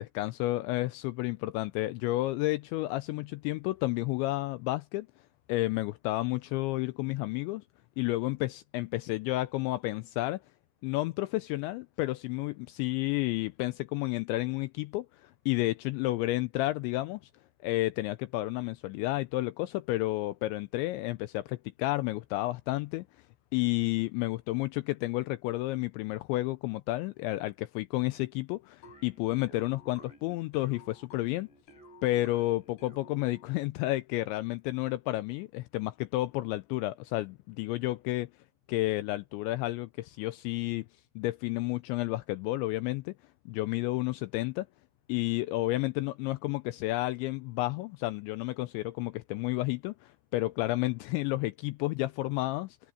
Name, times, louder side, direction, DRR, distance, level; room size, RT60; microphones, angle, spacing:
voice 1, 0.0-5.1 5.5-7.6 8.0-10.4 10.8-17.2 17.6-23.1 23.5-31.5 32.0-38.3 38.7-40.9 41.2-43.1 43.5-44.7 45.1-52.8, left 18 dB, 85° left, 2.6 m, -31 dB
sound 1, 28.8-33.6, left 1 dB, 55° left, 7.2 m, -54 dB
omnidirectional pair, 5.8 m